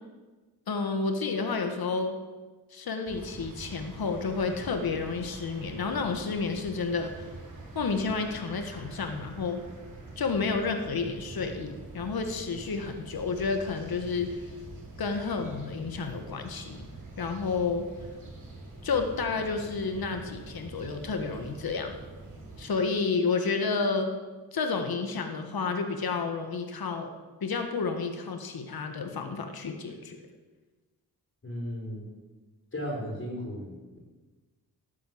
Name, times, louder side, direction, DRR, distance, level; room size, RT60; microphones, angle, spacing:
voice 1, 0.7-2.2 2.7-7.3 7.7-9.6 10.2-14.4 15.0-16.9 17.2-17.8 18.8-22.0 22.6-24.1 24.5-27.1 27.4-30.2, left 4 dB, 75° left, 6 dB, 1.7 m, -30 dB
sound 1, 3.1-22.7, right 2 dB, 55° right, 5.3 m, -45 dB
voice 2, 31.4-32.2 32.7-34.0, equal, 35° left, -1 dB, 5.4 m, -36 dB
17.5 x 8.4 x 7.9 m, 1.3 s
wide cardioid pair, 140°, 37 cm